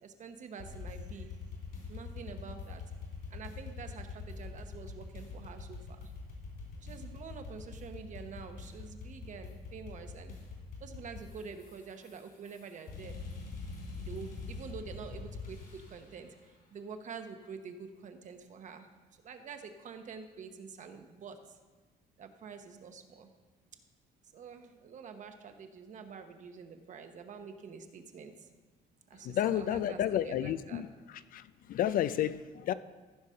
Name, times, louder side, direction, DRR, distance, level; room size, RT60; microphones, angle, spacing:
voice 1, 0.0-1.4 1.9-2.8 3.3-6.1 6.8-10.3 10.8-13.2 14.0-18.9 19.2-21.6 22.2-23.3 24.3-28.5 29.1-30.8, right 5 dB, 45° right, 7 dB, 1.0 m, -47 dB
sound 1, 0.6-16.2, left 4 dB, 75° left, 3.7 m, -44 dB
voice 2, 29.2-30.9 31.3-32.7, left 11 dB, 55° left, 15 dB, 0.4 m, -31 dB
14.5 x 4.9 x 5.7 m, 1.3 s
cardioid pair, 110°, 17 cm